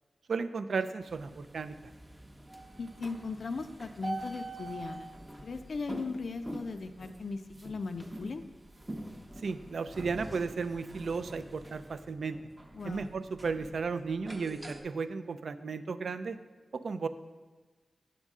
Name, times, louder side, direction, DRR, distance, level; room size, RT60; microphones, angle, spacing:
voice 1, 0.3-1.7 9.4-12.4 12.9-16.4 16.7-17.1, right 4 dB, 75° right, 11 dB, 0.3 m, -34 dB
sound 1, 1.0-14.8, right 1 dB, 20° right, 0.6 m, -45 dB
voice 2, 2.8-5.1 5.4-8.4 12.7-13.1, left 4 dB, 65° left, 7 dB, 0.3 m, -38 dB
7.2 x 5.3 x 3.6 m, 1.4 s
wide cardioid pair, 75°, 0 cm